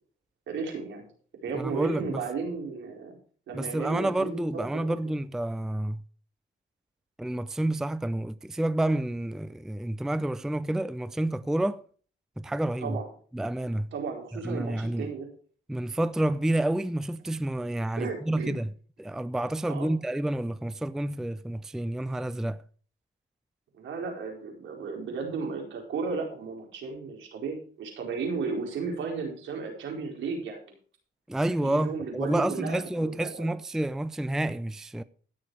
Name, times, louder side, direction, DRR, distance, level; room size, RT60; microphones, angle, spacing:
voice 1, 0.5-1.0 1.4-3.2 3.5-4.9 12.8-13.1 13.9-15.3 18.0-18.5 19.7-19.9 23.7-30.7 31.6-33.5, right 4 dB, 75° right, 4.4 m, -34 dB
voice 2, 1.5-2.2 3.5-6.0 7.2-11.8 12.4-13.0 13.3-13.9 14.4-15.1 15.7-18.7 19.0-22.6 31.3-35.0, right 1 dB, ahead, 0.4 m, -29 dB
15.5 x 6.6 x 4.8 m
cardioid pair, 90°, 20 cm